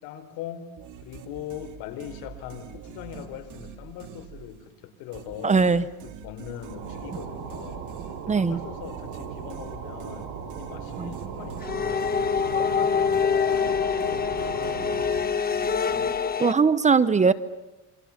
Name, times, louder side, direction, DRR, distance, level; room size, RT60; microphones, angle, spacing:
voice 1, 0.0-0.7 1.0-5.6 6.0-7.9 8.3-12.1 12.4-15.3, left 9 dB, 75° left, 7 dB, 4.5 m, -40 dB
sound 1, 0.8-4.7 5.1-12.8 13.1-16.6, right 7 dB, 55° right, 3.5 m, -45 dB
voice 2, 5.4-5.8 8.3-8.6 11.0-11.1 12.5-12.6 16.4-17.3, right 5 dB, 20° right, 15 dB, 0.9 m, -20 dB
sound 2, 6.5-15.4, right 6 dB, 90° right, 5.9 m, -38 dB
sound 3, 11.6-16.5, left 6 dB, 25° left, 1.4 m, -25 dB
28.5 x 25.5 x 7.3 m, 1.0 s
cardioid pair, 130°, 36 cm